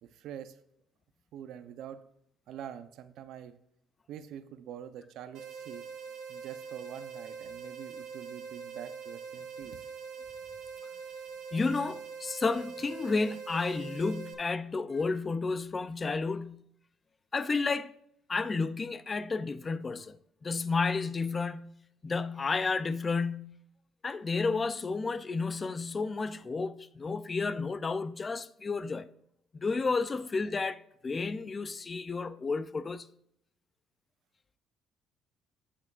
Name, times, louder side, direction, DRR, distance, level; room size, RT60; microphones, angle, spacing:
voice 1, 0.0-0.6 1.3-2.0 2.5-3.6 4.1-5.9 6.3-9.9, right 9 dB, 65° right, 0.5 m, -45 dB
sound 1, 5.3-14.3, right 6 dB, 80° right, 1.0 m, -43 dB
voice 2, 11.5-16.6 17.3-17.9 18.3-20.2 20.4-21.7 22.0-23.6 24.0-29.1 29.5-33.1, left 4 dB, 25° left, 0.3 m, -31 dB
8.5 x 8.5 x 2.4 m
cardioid pair, 145°, 0 cm